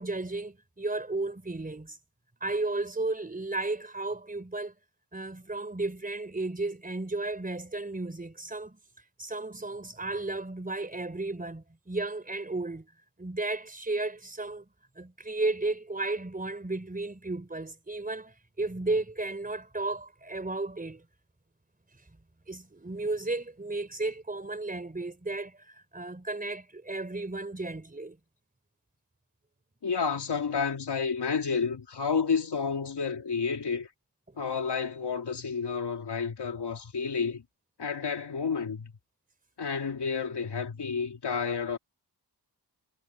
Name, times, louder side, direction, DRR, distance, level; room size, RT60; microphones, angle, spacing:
voice 1, 0.0-2.0 2.4-4.7 5.1-8.8 9.2-12.9 13.2-14.6 15.0-21.0 22.5-28.2, right 2 dB, 20° right, 4.1 m, -34 dB
voice 2, 29.8-33.9 34.4-37.4 37.8-38.9 39.6-41.8, left 5 dB, 75° left, 2.7 m, -30 dB
wide cardioid pair, 90°, 40 cm